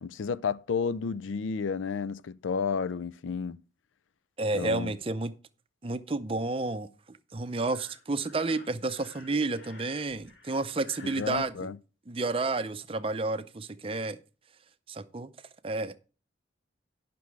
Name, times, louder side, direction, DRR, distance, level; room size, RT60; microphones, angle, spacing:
voice 1, 0.0-3.6 4.5-5.0 11.2-11.8, left 5 dB, 85° left, 0.4 m, -31 dB
voice 2, 4.4-5.3 5.8-11.7 12.1-14.2 14.9-15.3 15.6-16.0, right 3 dB, 30° right, 0.5 m, -31 dB
Breathing, 7.7-11.4, left 3 dB, 70° left, 3.4 m, -52 dB
10.5 x 6.0 x 4.6 m
head